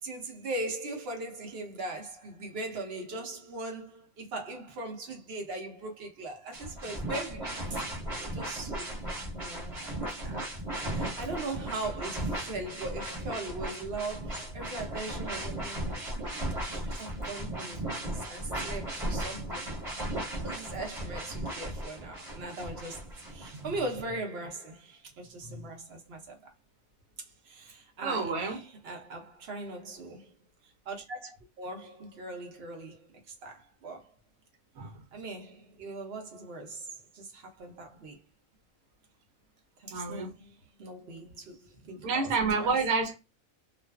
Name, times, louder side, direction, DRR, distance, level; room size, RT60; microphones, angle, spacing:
voice 1, 0.0-7.8 8.2-10.5 10.9-19.7 20.4-26.5 27.4-30.3 30.6-34.1 35.1-38.2 39.8-42.3 42.6-42.8, right 2 dB, 55° right, 0.9 m, -40 dB
sound 1, 6.5-23.8, right 1 dB, 25° right, 1.1 m, -36 dB
voice 2, 28.0-28.6 34.7-35.0 39.9-40.3 42.0-43.2, right 4 dB, 90° right, 1.1 m, -29 dB
2.4 x 2.4 x 2.2 m
omnidirectional pair, 1.5 m